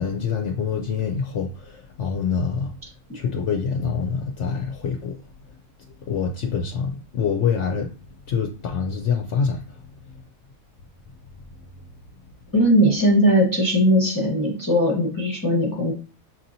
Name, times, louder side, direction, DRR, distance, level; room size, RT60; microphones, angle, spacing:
voice 1, 0.0-2.7 3.1-5.2 6.1-7.9 8.3-9.6, left 6 dB, 65° left, 0.8 m, -25 dB
voice 2, 12.5-15.9, equal, 15° left, 0.9 m, -19 dB
6.1 x 2.8 x 2.6 m
omnidirectional pair, 1.4 m